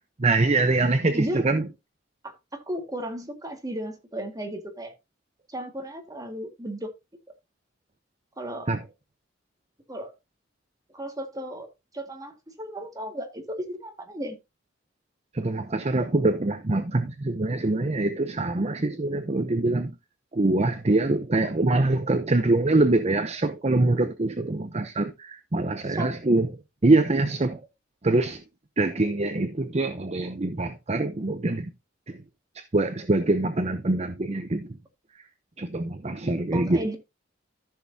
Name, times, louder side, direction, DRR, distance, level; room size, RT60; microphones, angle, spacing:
voice 1, 0.2-1.6 8.7-8.8 15.3-19.9 20.3-26.5 26.8-27.6 28.0-28.4 28.8-31.7 32.7-34.7 35.6-36.8, right 2 dB, 35° right, 0.7 m, -24 dB
voice 2, 1.1-1.4 2.2-4.9 5.5-6.9 8.4-8.8 9.9-10.1 10.9-14.4 25.8-26.2 36.5-37.0, right 1 dB, 20° right, 1.9 m, -35 dB
14.0 x 6.3 x 2.8 m
head